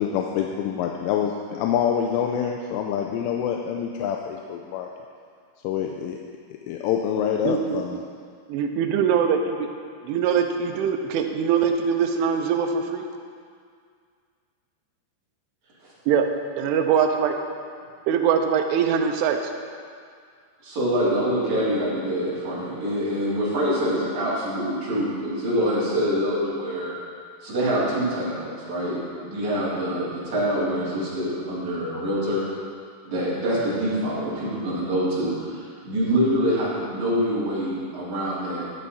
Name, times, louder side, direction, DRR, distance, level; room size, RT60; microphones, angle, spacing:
voice 1, 0.0-4.9 5.6-6.2 6.7-8.0, left 8 dB, 85° left, 2 dB, 3.1 m, -26 dB
voice 2, 7.4-7.8 8.5-9.7 10.0-13.0 16.1-16.3 16.6-17.4 18.1-19.4, right 7 dB, 80° right, 5 dB, 3.2 m, -22 dB
voice 3, 20.6-26.9 27.4-32.4 33.0-38.6, equal, 40° right, -10 dB, 4.7 m, -25 dB
13.5 x 10.0 x 4.2 m, 2.1 s
omnidirectional pair, 5.6 m